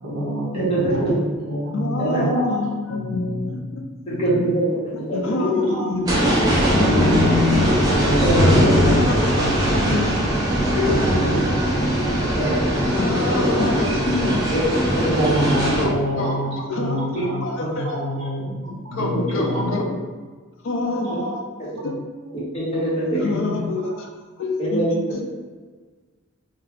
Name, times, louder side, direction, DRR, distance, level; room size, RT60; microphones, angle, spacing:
voice 1, 0.0-2.6 5.7-5.9 8.0-9.0 9.2-9.5 11.2-11.3 13.5-13.6 15.2-16.5 16.8-19.1 19.4-19.6 21.0-21.4, equal, 65° right, -7 dB, 1.1 m, -26 dB
voice 2, 0.5-1.1 2.0-2.2 4.2-4.6 4.9-5.3 6.6-6.7 8.2-8.6 8.9-9.0 12.3-12.6 14.5-15.3 17.2-17.3 17.6-17.7 19.1-19.7 21.6-21.7 22.5-23.2 24.6-24.9, right 1 dB, 30° left, -8 dB, 1.0 m, -23 dB
voice 3, 1.7-4.4 4.9-6.1 6.7-7.7 8.5-10.3 10.7-11.6 12.8-14.4 15.8-16.3 16.6-17.0 17.4-18.0 18.9-20.0 20.6-21.2 21.8-22.0 23.1-24.1 24.4-25.2, left 3 dB, 60° left, 1 dB, 0.4 m, -25 dB
sound 1, 6.1-15.9, right 1 dB, 15° right, 0.5 m, -20 dB
2.4 x 2.2 x 3.4 m, 1.4 s
head